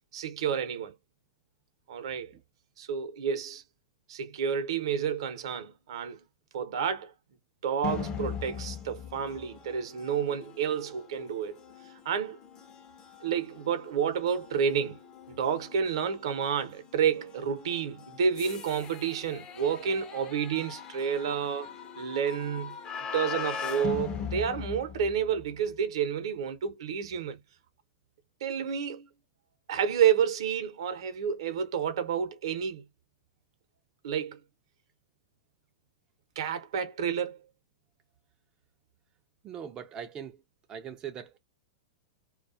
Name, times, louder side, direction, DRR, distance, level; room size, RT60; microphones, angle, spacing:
voice 1, 0.1-0.9 1.9-2.3 2.8-3.6 4.1-6.2 6.5-7.1 7.6-11.6 12.0-12.4 13.2-15.0 15.3-22.7 23.1-27.4 28.4-29.1 29.7-32.8 34.0-34.4 36.4-37.4, right 7 dB, 65° right, 0.7 m, -30 dB
sound 1, 7.8-25.6, left 7 dB, 30° left, 0.6 m, -40 dB
voice 2, 39.4-40.4 40.7-41.4, right 8 dB, 30° right, 0.4 m, -40 dB
2.3 x 2.2 x 2.5 m
hypercardioid pair, 100°, 3 cm